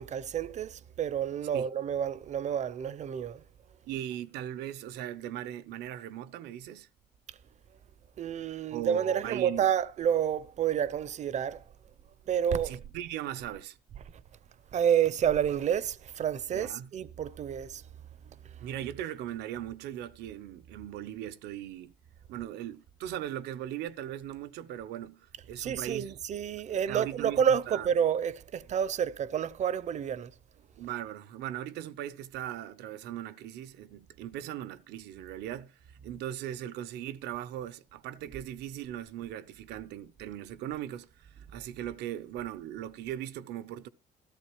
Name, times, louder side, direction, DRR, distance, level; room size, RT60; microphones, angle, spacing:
voice 1, 0.0-3.4 8.2-11.6 12.3-12.9 14.0-14.1 14.7-17.8 25.6-30.3, right 8 dB, 45° right, 0.6 m, -29 dB
voice 2, 3.8-6.9 8.7-9.6 12.6-13.8 16.5-16.9 18.6-21.9 22.3-26.2 26.9-27.9 30.8-35.8 36.0-43.9, right 11 dB, 85° right, 0.8 m, -39 dB
13.5 x 13.5 x 3.1 m
cardioid pair, 110°, 17 cm